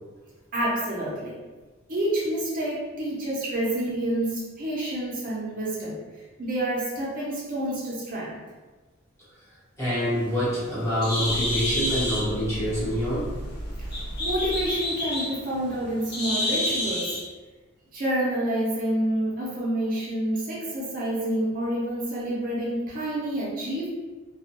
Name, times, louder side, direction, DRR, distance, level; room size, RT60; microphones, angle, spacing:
voice 1, 0.5-1.3 1.9-6.0 6.4-8.4 13.8-17.2 17.9-23.9, right 1 dB, 40° right, -7 dB, 0.6 m, -28 dB
voice 2, 9.8-13.3, equal, 15° left, -11 dB, 1.0 m, -26 dB
Bird, 10.0-17.2, left 1 dB, 50° left, 0.7 m, -30 dB
sound 1, 11.2-15.0, right 1 dB, 75° left, 0.3 m, -36 dB
2.3 x 2.1 x 2.8 m, 1.3 s
head